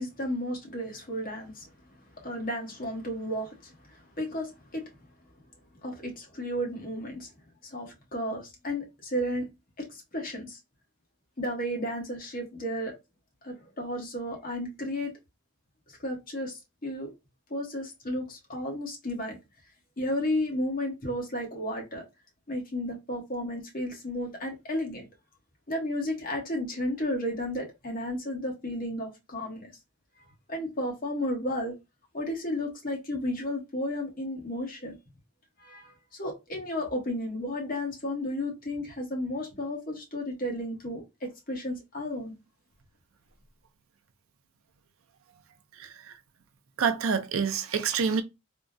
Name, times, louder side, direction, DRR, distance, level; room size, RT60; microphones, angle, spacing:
voice 1, 0.0-1.7 2.2-4.8 5.8-7.3 7.6-9.5 9.8-10.6 11.4-12.9 13.4-15.1 15.9-17.1 17.5-19.4 20.0-22.0 22.5-25.0 25.7-29.7 30.5-31.7 32.1-34.9 35.6-42.3, left 1 dB, 40° left, 1.1 m, -33 dB
voice 2, 46.8-48.2, right 6 dB, 75° right, 0.5 m, -27 dB
3.5 x 2.0 x 2.5 m
head